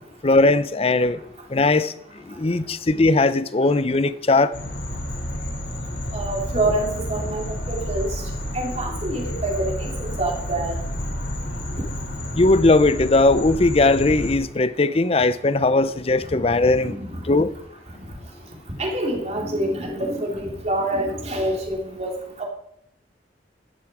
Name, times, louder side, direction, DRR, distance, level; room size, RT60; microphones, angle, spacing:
voice 1, 0.2-1.2 1.5-1.9 2.4-4.5 12.3-17.0 17.3-17.5, left 2 dB, 30° left, 0.6 m, -18 dB
sound 1, 4.5-14.3, equal, 75° left, 3.6 m, -30 dB
voice 2, 6.1-8.2 8.5-10.8 16.3-16.4 16.8-17.2 18.8-22.1 22.4-22.5, right 1 dB, 35° right, 2.9 m, -26 dB
14.0 x 10.5 x 4.9 m
head